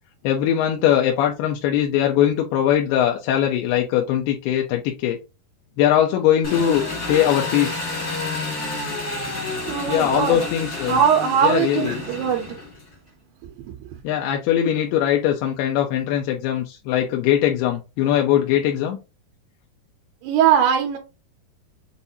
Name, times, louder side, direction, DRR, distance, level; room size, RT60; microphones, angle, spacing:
voice 1, 0.2-5.2 5.8-7.8 9.9-11.0 11.4-12.0 14.0-19.0, left 10 dB, 80° left, 2.6 m, -21 dB
Engine, 6.4-12.9, left 3 dB, 60° left, 0.8 m, -30 dB
voice 2, 9.7-10.5 10.8-12.6 13.8-14.0 20.2-21.0, right 8 dB, 80° right, 2.8 m, -20 dB
7.0 x 2.6 x 2.7 m
omnidirectional pair, 4.8 m